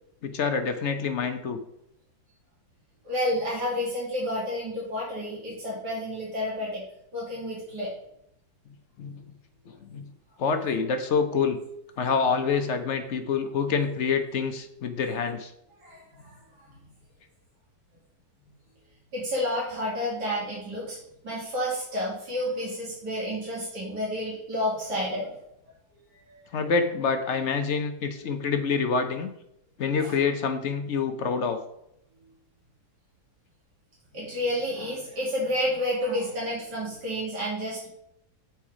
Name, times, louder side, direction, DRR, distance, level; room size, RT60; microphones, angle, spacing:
voice 1, 0.2-1.6 9.0-9.2 9.8-10.1 10.4-11.6 12.0-15.5 26.5-29.3 29.8-31.6, left 5 dB, 60° left, 7 dB, 0.8 m, -26 dB
voice 2, 3.0-6.8 7.1-7.9 15.8-16.4 16.6-16.8 19.1-21.0 21.2-25.4 26.3-26.4 30.0-30.1 34.1-37.9, left 1 dB, 75° right, -7 dB, 2.9 m, -30 dB
8.0 x 4.3 x 4.8 m, 0.78 s
omnidirectional pair, 1.8 m